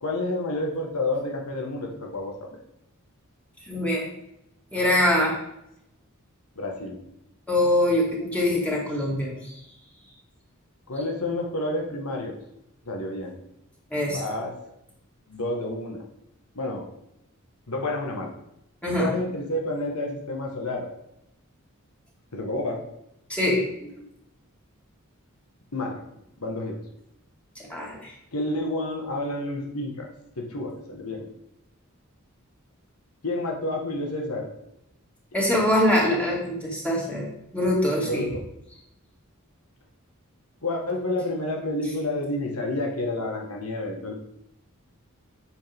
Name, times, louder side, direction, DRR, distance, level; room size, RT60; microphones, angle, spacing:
voice 1, 0.0-2.6 6.5-7.0 10.9-12.3 12.8-13.3 14.1-14.5 15.3-16.0 16.5-16.8 17.7-18.3 19.0-20.9 22.3-22.8 25.7-26.0 26.4-26.8 28.3-30.1 30.4-31.3 33.2-34.5 38.0-38.4 40.6-44.1, left 2 dB, 85° left, 0 dB, 1.5 m, -29 dB
voice 2, 3.7-4.1 4.7-5.3 7.5-9.5 13.9-14.2 18.8-19.1 23.3-23.9 27.7-28.1 35.3-37.3 37.5-38.3, left 1 dB, 5° left, -4 dB, 2.2 m, -23 dB
8.8 x 6.5 x 3.6 m, 0.82 s
head